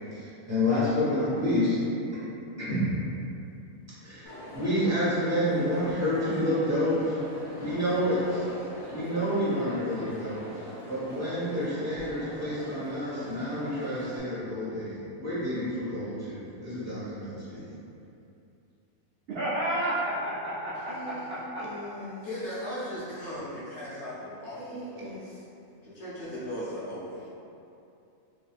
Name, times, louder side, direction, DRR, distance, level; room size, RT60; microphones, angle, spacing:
voice 1, 0.1-1.8 2.7-3.0 4.0-7.2 7.5-8.5 8.9-17.6, left 1 dB, 10° right, -13 dB, 1.1 m, -29 dB
Crowd, 4.3-14.2, equal, 25° left, 0.7 m, -42 dB
voice 2, 19.3-21.7, right 1 dB, 65° right, -9 dB, 0.6 m, -31 dB
voice 3, 20.7-22.3 22.9-23.1 24.6-25.3, equal, 85° right, -5 dB, 1.0 m, -42 dB
voice 4, 22.2-25.4 25.8-27.2, equal, 60° left, -9 dB, 1.0 m, -37 dB
3.2 x 2.6 x 2.3 m, 2.7 s
omnidirectional pair, 1.4 m